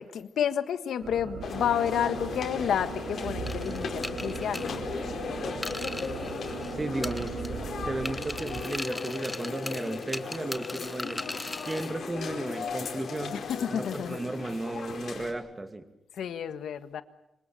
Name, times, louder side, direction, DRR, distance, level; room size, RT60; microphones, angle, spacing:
voice 1, 0.0-4.8 13.3-14.2 16.2-17.0, left 9 dB, 90° left, 11 dB, 1.6 m, -30 dB
sound 1, 1.0-8.6, right 4 dB, 85° right, 4.8 m, -38 dB
sound 2, 1.4-15.3, left 5 dB, 60° left, 4.8 m, -37 dB
sound 3, 3.5-6.7 7.0-7.7 8.1-11.9, left 1 dB, 10° left, 1.1 m, -39 dB
voice 2, 6.7-7.3 7.8-11.2 11.7-13.4 13.7-15.9, right 2 dB, 20° right, 8 dB, 2.4 m, -34 dB
26.0 x 25.5 x 6.9 m, 0.88 s
wide cardioid pair, 145°, 0 cm